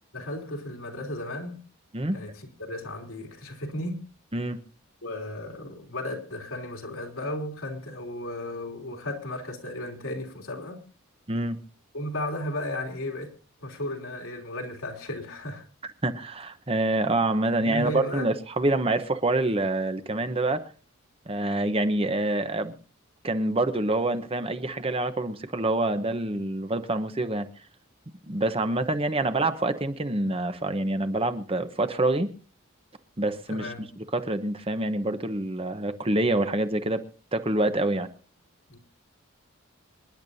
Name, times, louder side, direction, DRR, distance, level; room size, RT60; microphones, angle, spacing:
voice 1, 0.1-1.6 2.1-4.0 5.0-10.8 11.9-13.3 13.6-15.6 17.6-18.3 33.5-33.9 38.7-38.8, left 1 dB, 80° left, 3.2 m, -34 dB
voice 2, 16.0-20.6 21.3-22.8 23.2-27.5 28.3-32.3 33.2-33.7 34.1-37.0 37.3-38.1, right 2 dB, 25° right, 0.9 m, -26 dB
27.0 x 10.5 x 2.7 m
head